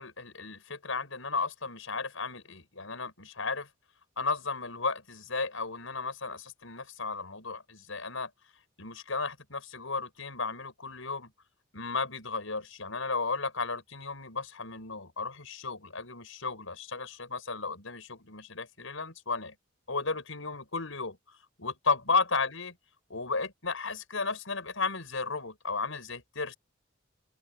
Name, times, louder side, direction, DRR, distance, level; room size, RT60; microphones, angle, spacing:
voice 1, 0.0-3.7 4.2-8.3 8.8-11.3 11.7-19.5 19.9-22.7 23.1-26.6, left 4 dB, 90° left, 5.9 m, -34 dB
open air
head